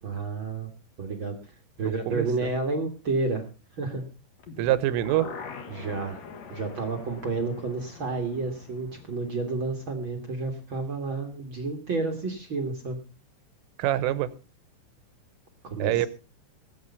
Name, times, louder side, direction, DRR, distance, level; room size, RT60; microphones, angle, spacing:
voice 1, 0.0-0.7 1.0-1.3 1.8-3.4 3.8-4.0 5.7-6.2 6.5-13.0 15.6-16.1, right 3 dB, 65° right, 5 dB, 1.2 m, -30 dB
voice 2, 1.9-2.5 4.6-5.3 13.8-14.3 15.8-16.1, right 13 dB, 90° right, 16 dB, 3.6 m, -25 dB
sound 1, 4.4-10.4 10.7-10.8, left 5 dB, 65° left, 1.7 m, -44 dB
19.5 x 8.5 x 5.4 m, 0.34 s
omnidirectional pair, 5.6 m